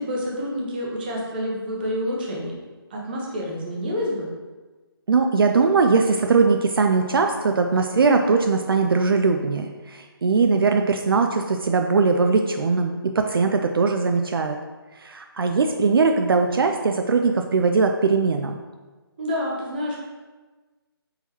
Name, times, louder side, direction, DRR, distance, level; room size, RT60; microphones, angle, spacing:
voice 1, 0.0-2.5 2.9-4.3 19.2-20.0, equal, 20° right, -3 dB, 0.7 m, -28 dB
voice 2, 5.1-14.6 15.0-18.6, right 4 dB, 65° right, 4 dB, 0.4 m, -20 dB
4.3 x 3.8 x 2.9 m, 1.3 s
figure-of-eight pair, 165°, 13 cm